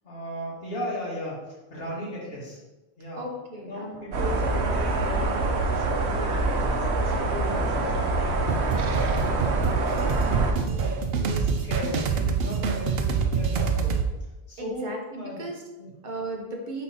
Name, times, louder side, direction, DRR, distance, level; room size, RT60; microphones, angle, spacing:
voice 1, 0.0-2.6 3.0-3.2 3.6-9.8 10.3-15.4 15.8-15.9, equal, 60° left, -6 dB, 1.9 m, -37 dB
voice 2, 3.2-4.1 14.6-15.6 16.0-16.8, right 1 dB, 45° right, 0 dB, 1.1 m, -36 dB
sound 1, 4.1-10.5, right 2 dB, 90° right, 1.1 m, -25 dB
sound 2, 8.5-14.1, right 5 dB, 70° right, 0.8 m, -26 dB
4.3 x 4.2 x 5.5 m, 1.1 s
omnidirectional pair, 1.1 m